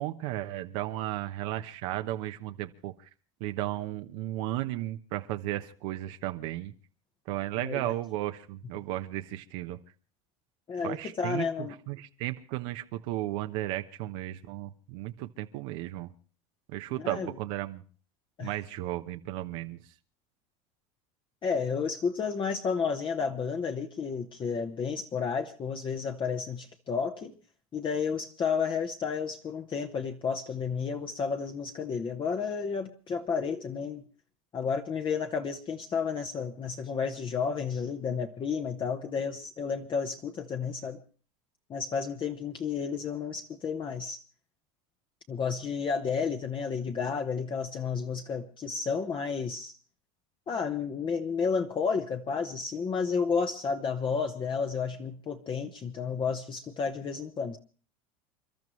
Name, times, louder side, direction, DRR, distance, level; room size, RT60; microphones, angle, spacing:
voice 1, 0.0-3.1 3.4-6.7 7.3-9.8 10.8-16.1 16.7-17.8 18.4-19.8, right 15 dB, 70° right, 7 dB, 1.0 m, -34 dB
voice 2, 10.7-11.8 16.9-17.3 18.4-18.5 21.4-27.3 27.7-34.0 34.5-41.0 41.7-44.2 45.3-49.7 50.5-57.6, left 5 dB, 30° left, 4 dB, 1.1 m, -31 dB
29.0 x 12.5 x 3.2 m, 0.39 s
supercardioid pair, 120°, 17 cm